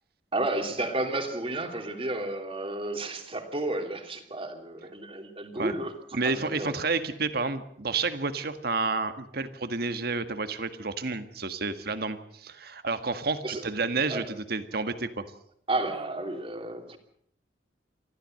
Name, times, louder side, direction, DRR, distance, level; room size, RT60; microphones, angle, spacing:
voice 1, 0.3-5.9 6.2-6.8 13.4-13.6 14.1-14.3 15.7-17.0, right 2 dB, 30° right, 5 dB, 2.9 m, -32 dB
voice 2, 6.1-15.2, right 4 dB, 60° right, 10 dB, 1.7 m, -30 dB
24.5 x 15.5 x 7.8 m, 0.68 s
head